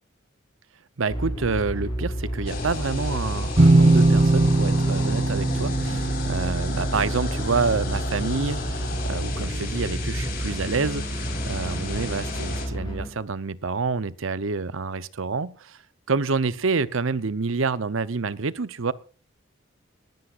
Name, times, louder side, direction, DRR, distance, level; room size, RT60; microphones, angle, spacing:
voice 1, 1.0-15.8 16.1-18.9, right 4 dB, 80° right, 16 dB, 0.8 m, -28 dB
sound 1, 1.1-13.1, equal, 20° left, 6.1 m, -31 dB
sound 2, 2.5-12.7, left 3 dB, 45° left, 4.6 m, -34 dB
sound 3, 3.6-9.2, right 2 dB, 30° right, 0.8 m, -21 dB
20.0 x 14.0 x 2.5 m, 0.38 s
head